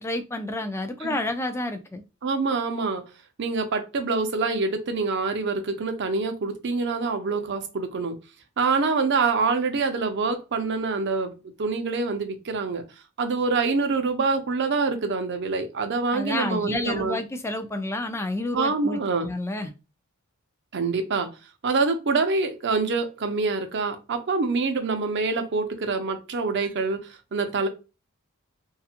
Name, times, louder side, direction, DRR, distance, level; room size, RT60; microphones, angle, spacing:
voice 1, 0.0-2.0 16.1-19.7, left 2 dB, 10° left, 0.3 m, -30 dB
voice 2, 2.2-3.0 3.4-8.2 8.6-12.8 13.2-17.2 18.5-19.3 20.7-21.3 21.6-27.7, right 4 dB, 55° right, 0.6 m, -26 dB
2.8 x 2.4 x 2.4 m
head